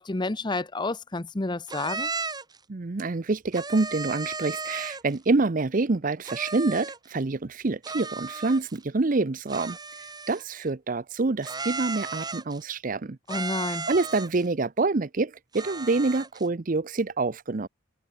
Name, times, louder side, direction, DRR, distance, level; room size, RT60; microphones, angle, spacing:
voice 1, 0.0-2.1 13.3-13.9, left 2 dB, 20° left, 0.7 m, -30 dB
sound 1, 1.7-2.6 3.5-5.2 6.2-7.1 7.8-8.8 9.5-10.6 11.4-12.6 13.3-14.5 15.5-16.5, right 4 dB, 20° right, 3.1 m, -35 dB
voice 2, 2.7-9.8 10.3-13.2 13.9-17.7, right 3 dB, 40° right, 0.6 m, -26 dB
head